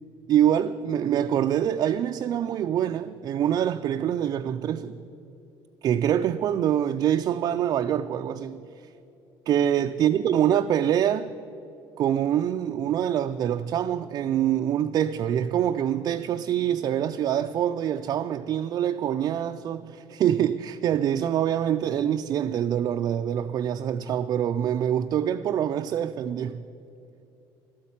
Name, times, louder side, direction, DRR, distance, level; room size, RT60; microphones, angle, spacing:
voice 1, 0.3-4.9 5.8-8.6 9.5-11.3 12.0-26.6, right 10 dB, 45° right, 0.3 m, -25 dB
12.5 x 9.0 x 8.5 m
cardioid pair, 130°, 9 cm